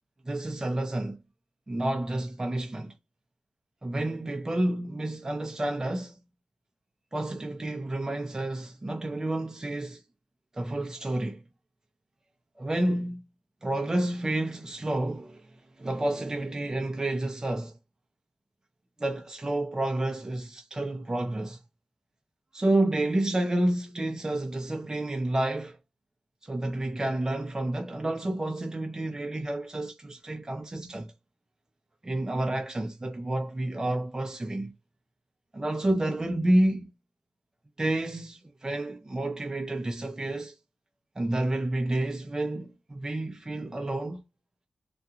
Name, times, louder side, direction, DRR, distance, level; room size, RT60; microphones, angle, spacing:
voice 1, 0.2-1.2 1.7-2.9 3.8-6.2 7.1-10.0 10.5-11.4 12.6-13.2 13.6-15.5 15.8-17.8 19.0-21.6 22.5-25.8 26.4-31.1 32.0-34.7 35.5-36.9 37.8-40.5 41.2-44.2, right 1 dB, 25° right, 0.6 m, -29 dB
2.3 x 2.3 x 2.7 m
cardioid pair, 60°, 2 cm